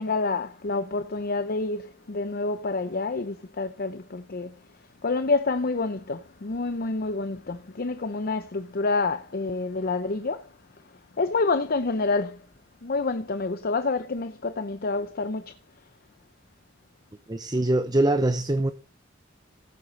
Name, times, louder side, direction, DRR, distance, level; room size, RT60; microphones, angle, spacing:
voice 1, 0.0-4.5 5.0-10.4 11.2-12.4 12.8-15.5, left 3 dB, 50° left, 0.7 m, -28 dB
voice 2, 17.3-18.7, right 1 dB, 20° right, 0.8 m, -23 dB
16.5 x 8.2 x 4.1 m
head